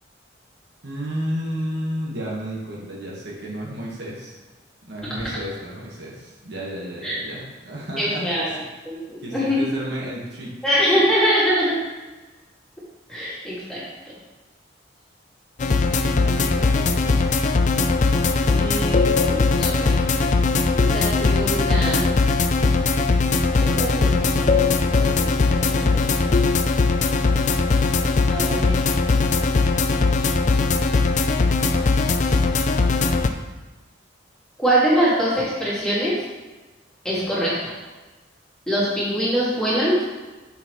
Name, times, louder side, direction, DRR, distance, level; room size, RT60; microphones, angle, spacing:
voice 1, 0.8-4.3 4.9-8.7 9.2-10.5 16.1-17.1, equal, 60° right, -4 dB, 1.5 m, -32 dB
voice 2, 8.0-8.5 8.8-9.7 10.6-11.8 13.1-13.8 18.5-19.9 20.8-22.1 23.6-26.5 28.3-28.9 34.6-36.2 37.0-37.7 38.7-40.1, equal, 5° left, -9 dB, 2.1 m, -23 dB
sound 1, 15.6-33.3, left 3 dB, 40° left, 0.3 m, -20 dB
6.8 x 5.9 x 3.1 m, 1.2 s
head